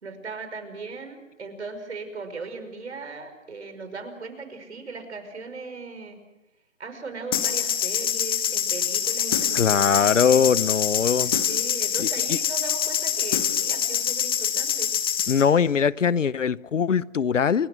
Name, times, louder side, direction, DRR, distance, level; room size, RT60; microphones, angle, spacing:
voice 1, 0.0-6.2 6.8-10.4 11.2-14.9, right 4 dB, 60° right, 5.7 m, -38 dB
sound 1, 7.3-15.5, left 9 dB, 20° left, 1.1 m, -25 dB
voice 2, 9.5-11.4 12.0-12.4 15.3-17.7, left 7 dB, 70° left, 0.8 m, -21 dB
29.0 x 21.5 x 6.3 m
figure-of-eight pair, 160°, 39 cm